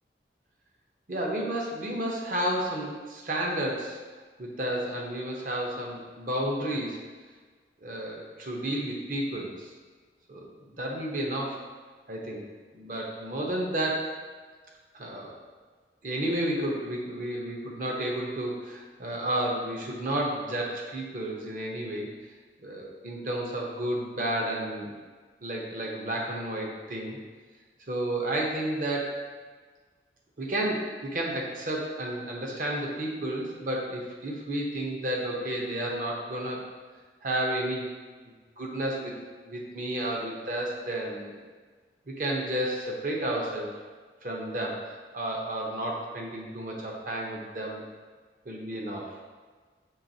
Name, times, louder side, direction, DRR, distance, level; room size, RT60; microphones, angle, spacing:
voice 1, 1.1-4.0 4.4-7.0 7.8-9.7 10.3-11.6 12.1-12.4 12.7-14.1 14.9-15.3 16.0-22.1 22.6-24.9 25.4-27.2 27.9-29.1 30.4-36.7 37.2-37.9 38.6-39.1 39.4-41.4 42.1-43.7 44.2-47.8 48.5-49.1, right 1 dB, 50° right, -1 dB, 0.7 m, -31 dB
5.5 x 3.1 x 2.7 m, 1.5 s
head